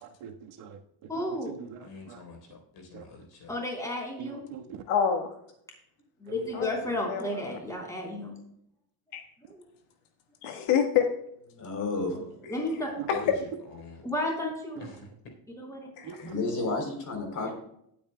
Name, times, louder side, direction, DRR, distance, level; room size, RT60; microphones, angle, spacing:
voice 1, 0.0-2.2 2.9-3.0 4.2-4.8 6.3-6.6 13.0-13.1 14.8-14.9 16.0-16.3, right 8 dB, 80° right, 3 dB, 1.6 m, -43 dB
voice 2, 1.1-1.5 3.5-4.5 6.2-8.4 9.4-9.7 12.5-12.9 14.0-14.9 15.6-15.9, left 1 dB, 5° left, -1 dB, 3.6 m, -33 dB
voice 3, 1.8-3.6 6.6-7.0 12.6-14.0 14.8-15.1, left 5 dB, 60° left, 3 dB, 3.9 m, -45 dB
voice 4, 4.9-5.3 6.5-7.6 9.1-9.2 10.4-11.1 13.1-13.2 16.0-16.1, left 8 dB, 85° left, 4 dB, 1.6 m, -27 dB
voice 5, 11.5-12.4 16.2-17.5, left 3 dB, 40° left, 3 dB, 3.6 m, -32 dB
18.5 x 8.6 x 2.2 m, 0.73 s
cardioid pair, 155°, 49 cm